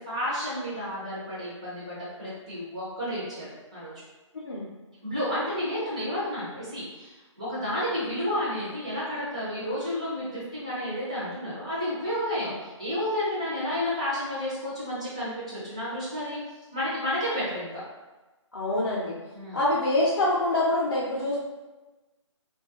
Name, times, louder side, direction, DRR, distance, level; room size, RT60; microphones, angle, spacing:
voice 1, 0.1-3.5 3.7-3.9 5.0-16.4 16.7-17.8 19.3-19.6, left 1 dB, 10° right, -10 dB, 0.5 m, -31 dB
voice 2, 18.5-19.2 19.5-21.4, left 1 dB, 45° left, -7 dB, 0.5 m, -25 dB
3.0 x 2.3 x 2.7 m, 1.2 s
hypercardioid pair, 175°, 16 cm